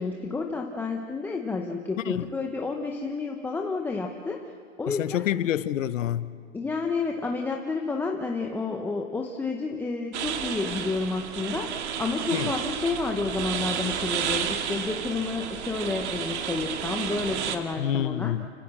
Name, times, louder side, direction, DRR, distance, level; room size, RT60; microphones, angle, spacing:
voice 1, 0.0-4.4 4.8-5.2 6.5-18.3, left 4 dB, 5° left, 0.7 m, -30 dB
voice 2, 4.9-6.4 12.3-12.5 17.8-18.5, left 11 dB, 80° left, 1.0 m, -27 dB
sound 1, 10.1-17.6, right 8 dB, 60° right, 2.1 m, -31 dB
30.0 x 16.0 x 7.5 m
hypercardioid pair, 150°, 38 cm